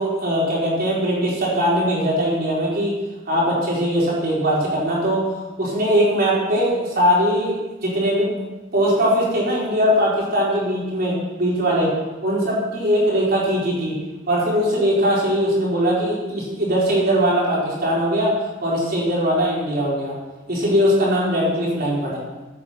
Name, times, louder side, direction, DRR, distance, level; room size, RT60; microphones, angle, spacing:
voice 1, 0.0-2.9 3.3-5.2 5.6-8.3 8.7-11.9 12.2-13.9 14.3-20.1 20.5-22.2, equal, 50° right, -6 dB, 4.6 m, -20 dB
15.0 x 9.0 x 4.4 m, 1.1 s
head